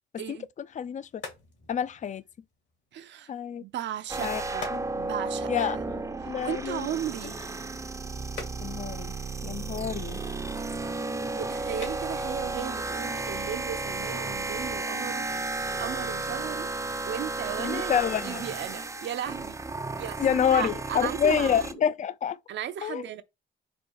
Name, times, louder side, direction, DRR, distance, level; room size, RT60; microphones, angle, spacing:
voice 1, 0.2-0.5 2.9-3.3 3.6-4.7 4.9-5.8 6.2-7.4 11.3-15.3 15.8-16.7 17.0-19.6 20.0-21.7 22.5-23.2, right 10 dB, 65° right, 0.6 m, -36 dB
sound 1, 0.6-14.1, left 5 dB, 70° left, 2.1 m, -49 dB
voice 2, 0.8-1.1 1.7-2.2 3.3-3.6 4.2-4.4 4.7-4.8 5.5-6.9 8.6-9.1 9.4-10.2 17.6-18.4 20.2-22.4 22.8-23.0, left 8 dB, 40° left, 0.4 m, -28 dB
sound 2, 4.1-21.7, right 3 dB, 15° right, 0.5 m, -33 dB
4.3 x 2.4 x 4.6 m
cardioid pair, 90°, 20 cm